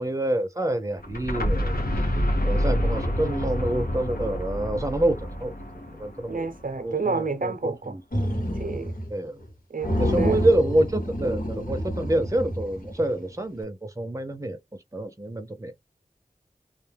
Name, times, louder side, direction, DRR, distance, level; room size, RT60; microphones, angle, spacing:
voice 1, 0.0-1.8 2.4-6.5 6.8-8.0 9.1-9.4 10.0-14.6 14.9-15.7, right 1 dB, 20° right, 0.7 m, -27 dB
sound 1, 1.0-6.8, equal, 90° left, 0.7 m, -27 dB
voice 2, 6.3-8.0 8.6-8.9 9.7-10.4, right 4 dB, 65° right, 0.6 m, -29 dB
sound 2, 8.1-9.1 9.4-9.5 9.8-13.2, equal, 70° left, 1.2 m, -28 dB
2.5 x 2.3 x 3.3 m
wide cardioid pair, 40°, 15 cm